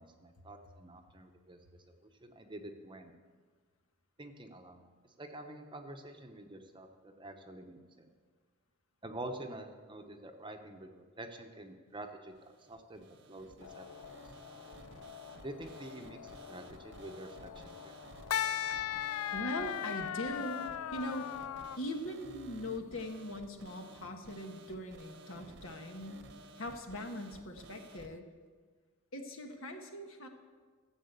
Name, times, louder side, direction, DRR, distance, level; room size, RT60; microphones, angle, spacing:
voice 1, 0.0-1.6 1.9-3.1 4.2-4.8 5.2-8.1 9.0-14.1 15.4-17.9, right 1 dB, 20° right, 5 dB, 0.9 m, -47 dB
sound 1, 12.3-28.2, right 2 dB, 55° right, 0.8 m, -54 dB
sound 2, 13.6-21.8, left 10 dB, 75° left, 0.4 m, -40 dB
voice 2, 19.3-21.3 21.8-26.3 26.6-28.2 29.1-30.3, left 1 dB, 60° left, 4 dB, 1.6 m, -41 dB
14.5 x 7.7 x 8.1 m, 1.5 s
head